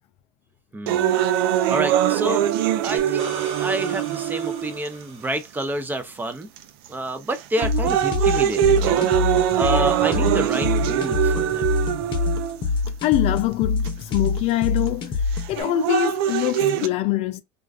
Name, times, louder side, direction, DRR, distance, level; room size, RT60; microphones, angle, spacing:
voice 1, 0.7-1.2 1.7-2.5 2.8-6.5 6.9-9.1 9.6-11.7, right 1 dB, 15° right, 0.5 m, -29 dB
sound 1, 0.9-4.9 5.6-5.7 6.6-6.9 7.3-12.9 13.8-13.9 15.4-16.9, right 11 dB, 85° right, 0.4 m, -22 dB
sound 2, 3.0-5.8 8.6-8.7, right 4 dB, 50° right, 1.0 m, -38 dB
sound 3, 7.6-15.6, left 4 dB, 40° left, 0.8 m, -25 dB
voice 2, 13.0-15.2 15.5-17.4, left 14 dB, 60° left, 0.4 m, -24 dB
2.4 x 2.2 x 2.4 m
supercardioid pair, 105°, 13 cm